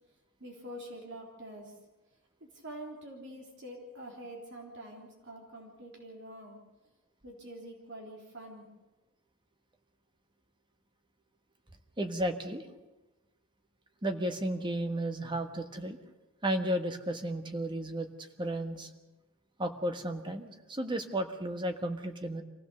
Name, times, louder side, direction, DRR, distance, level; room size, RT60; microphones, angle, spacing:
voice 1, 0.4-1.8 2.4-6.6 7.2-8.7, right 1 dB, 55° right, 0 dB, 3.5 m, -46 dB
voice 2, 12.0-12.6 14.0-16.0 16.4-18.1 18.4-18.9 19.6-22.4, right 1 dB, 20° right, 6 dB, 1.3 m, -33 dB
25.0 x 16.0 x 6.8 m, 1.1 s
head